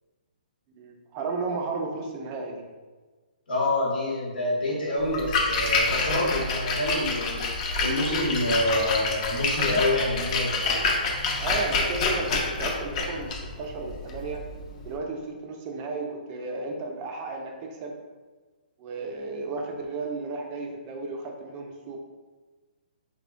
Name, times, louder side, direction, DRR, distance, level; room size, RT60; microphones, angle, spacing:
voice 1, 0.8-2.6 11.4-14.4 14.8-17.9 18.8-22.0, right 3 dB, 30° right, 2 dB, 0.3 m, -33 dB
voice 2, 3.5-7.5 7.8-10.9, left 1 dB, 70° left, -5 dB, 1.0 m, -27 dB
Splash splatter, 5.0-14.9, left 3 dB, 40° left, 0.4 m, -28 dB
3.0 x 2.1 x 2.4 m, 1.3 s
hypercardioid pair, 135°, 5 cm